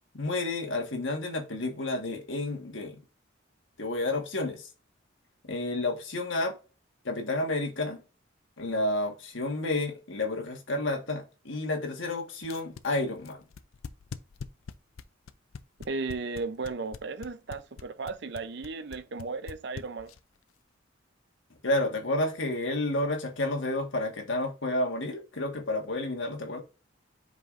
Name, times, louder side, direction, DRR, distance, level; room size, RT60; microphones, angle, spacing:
voice 1, 0.1-3.0 3.8-4.7 5.5-6.5 7.0-8.0 8.6-13.4 21.6-26.6, left 2 dB, 65° left, 1.6 m, -30 dB
sound 1, 12.4-20.4, left 5 dB, 90° left, 0.5 m, -42 dB
voice 2, 15.9-20.1, right 4 dB, 55° right, 0.6 m, -35 dB
8.0 x 5.4 x 2.6 m
head